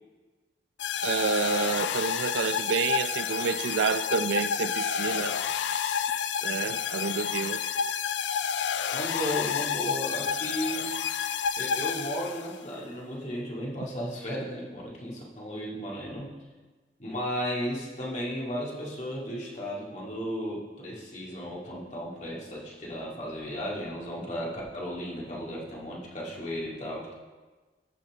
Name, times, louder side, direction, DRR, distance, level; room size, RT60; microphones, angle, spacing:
sound 1, 0.8-12.6, left 7 dB, 90° left, 0.4 m, -30 dB
voice 1, 1.0-5.4 6.4-7.6, right 5 dB, 85° right, 0.4 m, -29 dB
voice 2, 8.9-10.9 11.6-16.3 17.0-27.2, equal, 40° left, 2.1 m, -35 dB
14.5 x 5.8 x 3.6 m
head